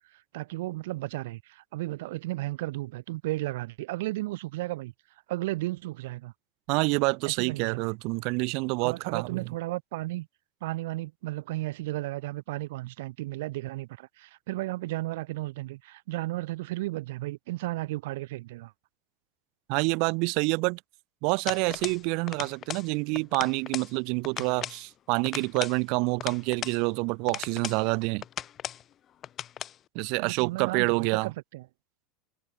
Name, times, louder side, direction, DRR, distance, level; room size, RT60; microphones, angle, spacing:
voice 1, 0.1-4.9 5.3-6.3 7.2-7.9 8.8-10.3 10.6-18.7 30.2-31.7, right 18 dB, 75° right, 1.3 m, -34 dB
voice 2, 6.7-9.5 19.7-20.8 21.2-28.2 29.9-31.3, right 31 dB, 50° right, 0.4 m, -27 dB
sound 1, 21.5-22.0 22.3-22.9 23.2-23.9 24.2-24.8 25.2-26.8 27.3-27.8 28.2-28.8 29.2-29.8, left 10 dB, 30° left, 1.2 m, -37 dB
supercardioid pair, 160°, 0 cm